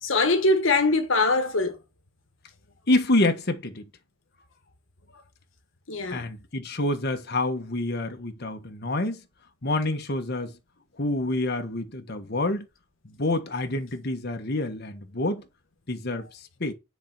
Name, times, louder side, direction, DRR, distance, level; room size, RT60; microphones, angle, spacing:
voice 1, 0.0-1.7 5.9-6.3, left 2 dB, 80° left, 1.5 m, -22 dB
voice 2, 2.9-3.9 6.1-9.2 9.6-10.6 11.0-12.6 13.0-15.4 15.9-16.7, left 2 dB, 55° left, 1.5 m, -27 dB
9.7 x 4.6 x 6.1 m
head